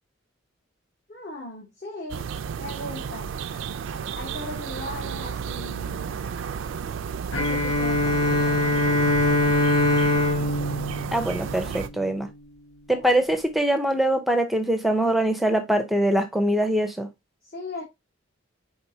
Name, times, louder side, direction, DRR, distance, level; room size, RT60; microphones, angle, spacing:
voice 1, 1.1-2.2 2.6-3.3 4.1-6.2 7.2-8.8 12.9-13.2 17.5-17.9, left 1 dB, 45° left, 1.1 m, -39 dB
sound 1, 2.1-11.9, right 7 dB, 65° right, 0.3 m, -33 dB
Bowed string instrument, 7.3-12.0, left 1 dB, 85° left, 0.7 m, -23 dB
voice 2, 11.1-12.3 12.9-17.1, right 1 dB, ahead, 0.5 m, -23 dB
4.3 x 4.2 x 2.7 m
head